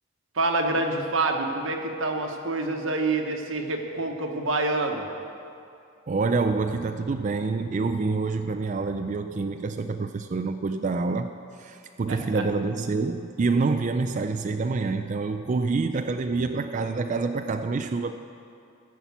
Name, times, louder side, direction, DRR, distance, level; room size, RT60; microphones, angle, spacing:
voice 1, 0.3-5.1 12.1-12.4, right 2 dB, 90° right, 3 dB, 1.2 m, -27 dB
voice 2, 6.1-11.3 11.6-18.1, right 3 dB, 40° right, 7 dB, 0.4 m, -27 dB
14.5 x 5.8 x 8.2 m, 2.5 s
head